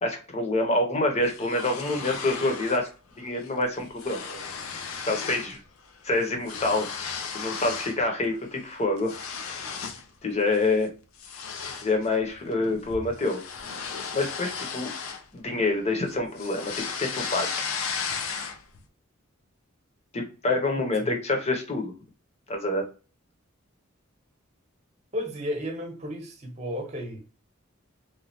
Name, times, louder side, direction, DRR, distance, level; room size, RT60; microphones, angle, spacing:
voice 1, 0.0-4.5 5.1-5.6 6.0-7.0 7.3-9.6 10.2-10.9 11.8-13.4 14.1-14.9 15.3-17.6 20.1-21.9 22.5-22.8, left 2 dB, 35° left, 0.8 m, -27 dB
sound 1, 1.2-2.9 3.2-3.5 3.7-5.6 5.8-8.0 8.4-10.1 10.5-10.8 11.2-15.7 16.1-18.8, left 6 dB, 80° left, 0.5 m, -35 dB
voice 2, 25.1-27.2, equal, 35° right, 0.9 m, -33 dB
3.1 x 2.3 x 2.7 m
head